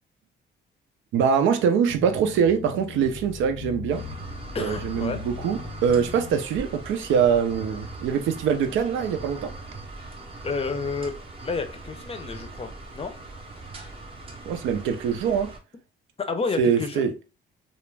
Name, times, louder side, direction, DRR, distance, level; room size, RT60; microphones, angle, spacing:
voice 1, 1.1-4.0 4.6-9.5 14.5-15.5 16.6-17.1, right 7 dB, 80° right, 0.5 m, -23 dB
sound 1, 1.9-6.4, left 6 dB, 75° left, 0.6 m, -40 dB
sound 2, 3.9-15.6, right 2 dB, 30° right, 0.7 m, -40 dB
voice 2, 4.5-5.2 10.4-11.2 11.4-13.1 16.2-17.0, left 4 dB, 30° left, 0.5 m, -30 dB
2.3 x 2.0 x 3.2 m
cardioid pair, 90°, 20 cm